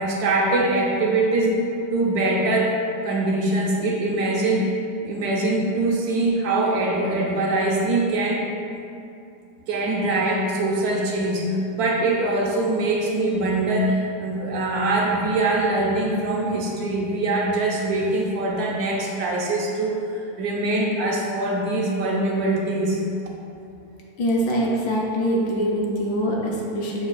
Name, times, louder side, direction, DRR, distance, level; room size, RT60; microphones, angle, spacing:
voice 1, 0.0-4.7 5.0-8.4 9.7-23.0, right 2 dB, 75° right, -3 dB, 1.1 m, -23 dB
voice 2, 24.2-27.1, equal, 70° left, -3 dB, 1.1 m, -23 dB
6.7 x 2.3 x 2.3 m, 2.6 s
omnidirectional pair, 1.7 m